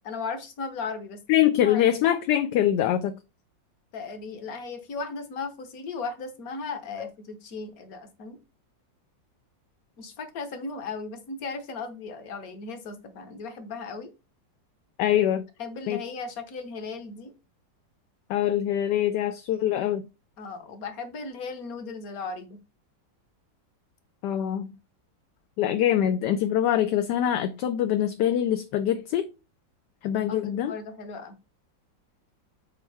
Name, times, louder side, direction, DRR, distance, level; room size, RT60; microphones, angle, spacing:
voice 1, 0.0-1.2 1.6-1.8 3.9-8.4 10.0-14.1 15.1-15.2 15.6-17.3 20.4-22.6 30.3-30.4 30.6-31.4, left 4 dB, 55° left, 1.5 m, -36 dB
voice 2, 1.3-3.2 7.0-7.1 15.0-15.4 15.9-16.0 18.3-20.1 24.2-24.8 25.6-29.3 30.0-30.7, left 11 dB, 75° left, 1.1 m, -24 dB
7.3 x 4.5 x 3.4 m
omnidirectional pair, 2.0 m